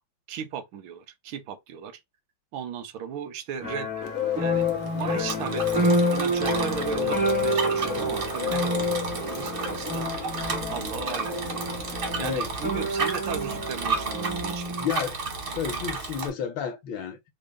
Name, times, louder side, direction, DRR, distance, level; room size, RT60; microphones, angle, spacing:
voice 1, 0.3-2.0 2.5-4.1 4.4-10.1 10.7-11.4 12.2-14.8, right 8 dB, 85° right, 1.4 m, -36 dB
sound 1, 3.6-14.9, right 1 dB, 10° right, 0.4 m, -29 dB
Bird, 4.0-12.3, left 11 dB, 60° left, 0.9 m, -31 dB
Bicycle, 4.5-16.3, right 4 dB, 55° right, 0.6 m, -33 dB
voice 2, 12.2-12.8 14.8-15.2 15.5-17.3, left 8 dB, 75° left, 1.4 m, -32 dB
3.9 x 2.0 x 3.4 m
omnidirectional pair, 2.2 m